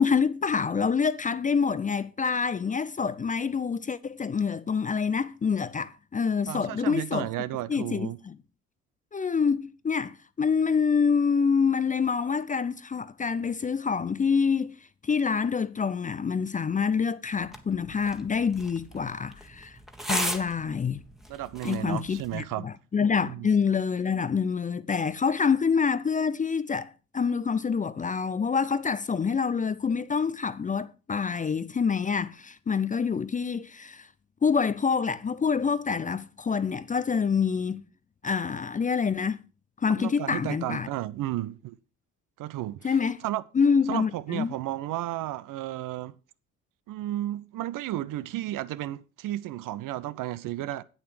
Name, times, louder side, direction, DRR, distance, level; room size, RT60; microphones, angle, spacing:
voice 1, 0.0-7.3 7.7-8.3 9.1-14.7 15.0-19.8 20.1-21.0 21.6-34.1 34.4-37.8 38.2-39.4 39.8-40.9 42.8-43.2 43.5-44.5, left 6 dB, 20° left, 0.5 m, -26 dB
voice 2, 6.5-8.2 21.3-22.7 23.2-23.5 39.9-41.8 42.4-43.0 43.2-43.4 43.9-46.2 46.9-50.8, right 14 dB, 55° right, 0.7 m, -33 dB
sound 1, 17.4-22.4, equal, ahead, 1.5 m, -37 dB
8.7 x 8.7 x 4.9 m
hypercardioid pair, 50°, 39 cm